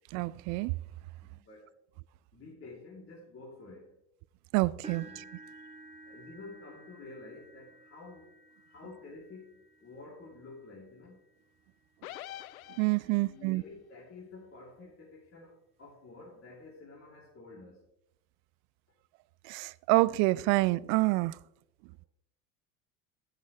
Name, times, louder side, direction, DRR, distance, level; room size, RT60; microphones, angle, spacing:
voice 1, 0.1-0.8 4.5-5.2 12.8-13.6 19.4-21.4, right 21 dB, 40° right, 0.4 m, -27 dB
voice 2, 1.1-1.7 2.3-4.0 4.9-5.3 6.0-8.3 8.7-11.2 13.2-17.8, left 3 dB, 30° left, 3.2 m, -50 dB
sound 1, 4.8-12.9 13.5-13.7 14.2-14.3 15.7-15.8, right 2 dB, 15° right, 1.8 m, -54 dB
sound 2, 12.0-13.4, left 14 dB, 70° left, 0.6 m, -45 dB
11.0 x 10.5 x 3.3 m
hypercardioid pair, 80°, 45 cm